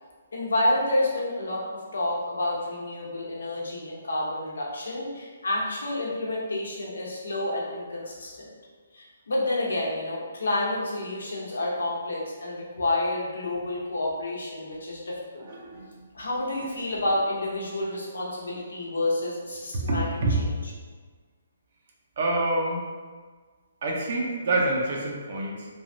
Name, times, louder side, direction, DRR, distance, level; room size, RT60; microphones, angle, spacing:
voice 1, 0.3-8.5 8.9-15.5 16.1-20.1 20.4-20.5, left 1 dB, 80° left, -4 dB, 0.8 m, -29 dB
voice 2, 15.5-15.9 19.7-20.4 22.2-22.8 23.8-25.7, right 2 dB, 55° right, -1 dB, 0.6 m, -26 dB
3.1 x 2.3 x 2.6 m, 1.5 s
hypercardioid pair, 145°, 0 cm